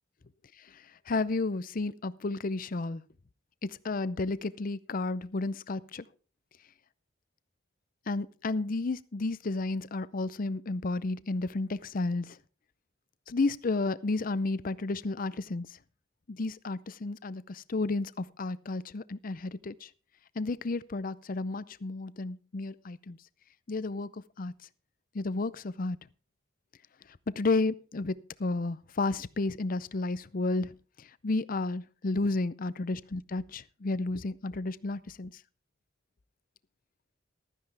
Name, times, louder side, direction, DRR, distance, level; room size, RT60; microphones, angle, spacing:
voice 1, 1.1-3.0 3.6-6.1 8.1-12.4 13.3-15.7 16.3-19.9 20.4-23.2 23.7-24.5 25.1-26.0 27.3-30.7 31.2-35.3, left 3 dB, 50° left, 0.6 m, -32 dB
15.5 x 13.0 x 3.4 m
head